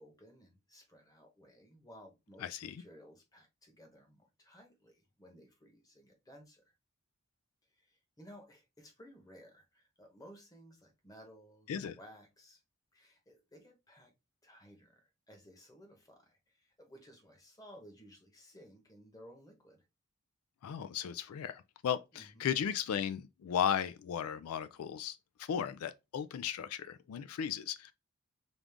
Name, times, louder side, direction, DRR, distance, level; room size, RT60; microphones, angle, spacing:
voice 1, 0.0-6.7 7.7-12.6 12.9-14.1 14.4-19.8 22.1-22.5, equal, 15° left, 1.0 m, -57 dB
voice 2, 2.4-2.8 11.7-12.0 20.6-27.9, left 8 dB, 80° left, 0.3 m, -36 dB
5.2 x 2.4 x 3.4 m
head